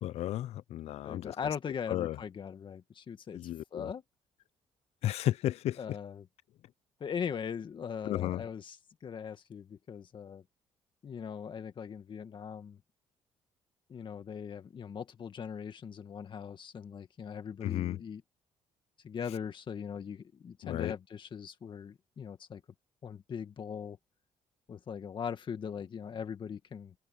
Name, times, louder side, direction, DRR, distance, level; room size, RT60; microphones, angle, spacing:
voice 1, 0.0-1.4 1.9-2.2 3.3-3.9 5.0-5.8 8.0-8.4 17.6-18.0 20.6-21.0, left 13 dB, 70° left, 0.5 m, -33 dB
voice 2, 1.0-3.4 3.7-4.0 5.8-6.2 7.0-8.8 9.0-10.4 11.0-12.8 13.9-18.2 19.0-22.6 23.0-24.0 24.7-26.9, left 7 dB, 45° left, 1.9 m, -40 dB
cardioid pair, 85°, 11 cm